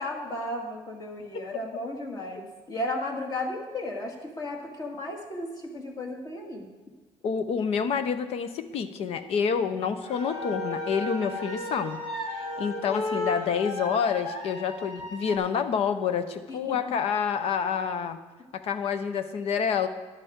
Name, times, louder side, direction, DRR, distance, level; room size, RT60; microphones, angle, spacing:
voice 1, 0.0-6.7 16.5-16.8, left 1 dB, 35° left, 1 dB, 2.0 m, -34 dB
voice 2, 7.2-12.0 12.3-18.2 18.5-19.9, left 6 dB, 60° left, 11 dB, 0.8 m, -28 dB
sound 1, 10.0-15.4, left 1 dB, 75° left, 2.8 m, -34 dB
12.5 x 10.5 x 3.7 m, 1.3 s
cardioid pair, 140°, 11 cm